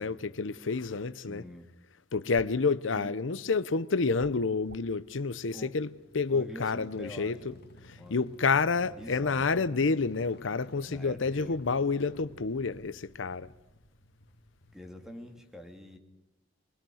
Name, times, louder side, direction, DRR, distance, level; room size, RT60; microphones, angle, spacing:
voice 1, 0.0-1.4 2.1-5.9 6.1-7.5 7.9-13.5, left 4 dB, 85° left, 0.8 m, -29 dB
voice 2, 1.2-1.6 2.9-3.1 5.5-5.7 6.3-7.6 8.0-8.2 8.9-9.7 10.9-11.8 14.7-16.0, equal, 5° right, 2.7 m, -46 dB
sound 1, 2.3-2.7 4.1-5.0, right 2 dB, 80° right, 1.0 m, -50 dB
sound 2, 5.4-15.4, left 1 dB, 60° left, 1.9 m, -55 dB
23.5 x 22.0 x 6.4 m
head